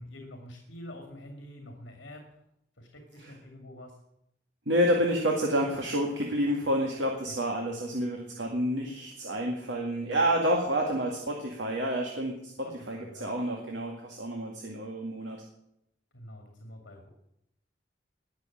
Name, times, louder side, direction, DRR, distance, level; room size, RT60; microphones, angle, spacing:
voice 1, 0.0-2.4 2.8-3.9 7.3-7.4 12.6-13.3 16.1-17.1, left 1 dB, 75° left, 3 dB, 2.4 m, -46 dB
voice 2, 4.7-12.5 12.9-15.4, equal, 70° right, 0 dB, 2.2 m, -29 dB
19.5 x 6.9 x 8.6 m, 0.80 s
head